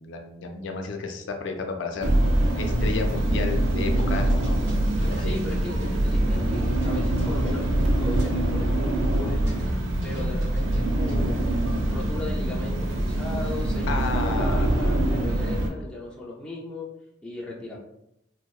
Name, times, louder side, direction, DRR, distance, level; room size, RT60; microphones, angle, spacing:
voice 1, 0.0-2.1 2.6-4.7 5.0-5.4 13.9-14.7, left 4 dB, 75° left, 4 dB, 0.3 m, -32 dB
sound 1, 2.0-15.7, right 1 dB, 80° right, 0.4 m, -24 dB
sound 2, 3.9-6.4 6.8-8.4 8.8-8.9 9.1-9.7 10.0-11.3, equal, 60° right, 1.1 m, -44 dB
voice 2, 5.2-9.5 10.0-11.5 11.9-16.9 17.2-17.8, left 2 dB, 5° left, -5 dB, 0.4 m, -36 dB
2.6 x 2.1 x 2.3 m, 0.80 s
head